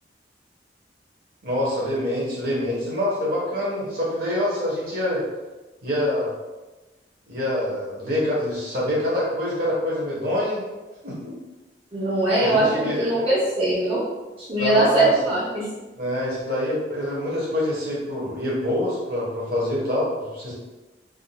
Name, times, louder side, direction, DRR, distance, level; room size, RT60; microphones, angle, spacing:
voice 1, 1.4-5.2 5.8-6.3 7.3-10.6 11.0-11.3 12.4-13.3 14.6-15.1 16.0-20.5, left 1 dB, 55° right, -5 dB, 1.1 m, -25 dB
voice 2, 11.9-14.0 14.5-15.7, right 2 dB, 35° right, -10 dB, 0.7 m, -21 dB
3.6 x 2.7 x 2.2 m, 1.1 s
head